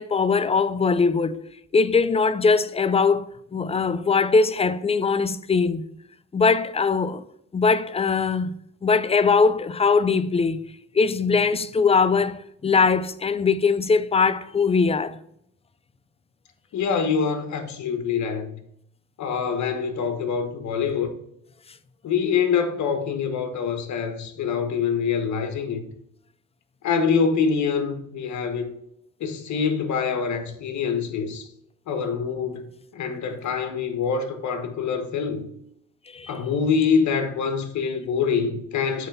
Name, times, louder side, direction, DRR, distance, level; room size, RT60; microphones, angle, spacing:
voice 1, 0.0-1.4 1.7-5.8 6.3-7.2 7.5-10.6 10.9-15.2 36.1-36.3, left 4 dB, 20° left, 0.4 m, -21 dB
voice 2, 16.7-18.6 19.2-21.1 22.0-25.8 26.8-28.7 29.2-31.5 31.9-32.7 32.9-35.5 36.3-39.1, left 6 dB, 70° left, 1.3 m, -25 dB
8.2 x 3.4 x 5.4 m
cardioid pair, 90°, 30 cm